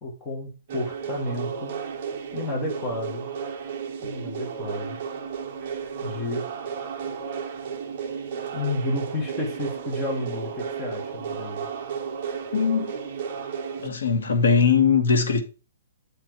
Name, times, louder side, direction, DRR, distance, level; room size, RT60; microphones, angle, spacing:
voice 1, 0.0-1.7 2.3-3.3 4.0-5.0 6.0-6.4 8.5-11.7, left 2 dB, 10° left, 1.4 m, -31 dB
sound 1, 0.7-13.9, right 6 dB, 30° right, 1.0 m, -33 dB
voice 2, 12.5-12.9 13.8-15.4, left 5 dB, 70° left, 1.6 m, -20 dB
8.2 x 4.4 x 4.7 m
hypercardioid pair, 180°, 0 cm